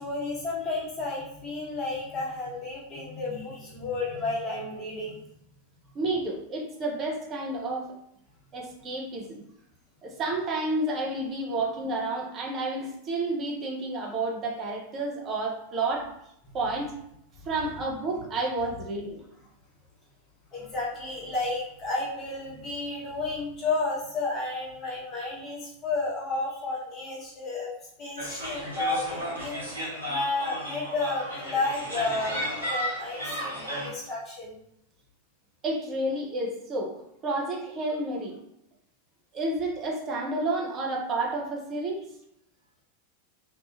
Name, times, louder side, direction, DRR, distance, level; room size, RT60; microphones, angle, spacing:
voice 1, 0.0-5.2 20.5-27.7 28.0-34.6, left 3 dB, 30° left, -5 dB, 1.0 m, -32 dB
voice 2, 5.9-7.9 8.5-9.4 10.0-16.1 16.5-16.9 17.5-19.2 35.6-38.4 39.3-42.0, right 2 dB, 30° right, 0 dB, 0.6 m, -30 dB
sound 1, 28.2-33.9, equal, 85° right, 0.9 m, -34 dB
2.7 x 2.4 x 2.4 m, 0.77 s
figure-of-eight pair, 90°, 0 cm